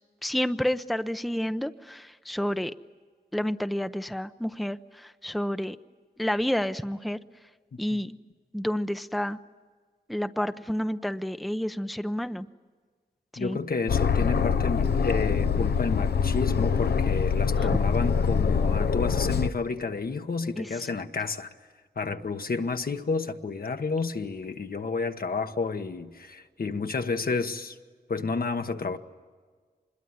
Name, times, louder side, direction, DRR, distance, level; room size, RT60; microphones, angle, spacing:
voice 1, 0.2-2.7 3.3-5.8 6.2-7.2 7.8-8.2 8.5-9.4 10.1-12.5 13.3-13.6 17.6-17.7 20.6-20.9, equal, ahead, 0.7 m, -30 dB
voice 2, 13.4-21.5 22.0-27.8 28.1-29.0, left 4 dB, 65° left, 1.2 m, -30 dB
Aircraft, 13.9-19.5, left 6 dB, 80° left, 0.7 m, -24 dB
25.5 x 21.5 x 9.6 m
wide cardioid pair, 70°, 16 cm